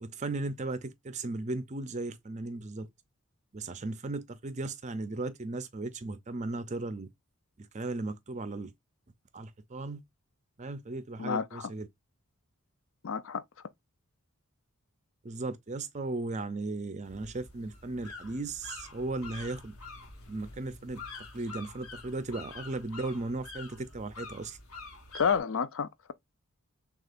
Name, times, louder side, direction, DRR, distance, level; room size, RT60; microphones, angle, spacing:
voice 1, 0.0-2.9 3.5-7.1 7.6-8.7 9.3-10.0 10.6-11.9 15.2-19.8 20.3-21.0 21.3-24.6, right 2 dB, 35° right, 0.5 m, -36 dB
voice 2, 11.2-11.7 13.0-13.4 25.1-26.1, left 6 dB, 65° left, 0.5 m, -30 dB
sound 1, 17.0-25.4, left 3 dB, 80° left, 1.2 m, -47 dB
6.5 x 2.4 x 2.5 m
head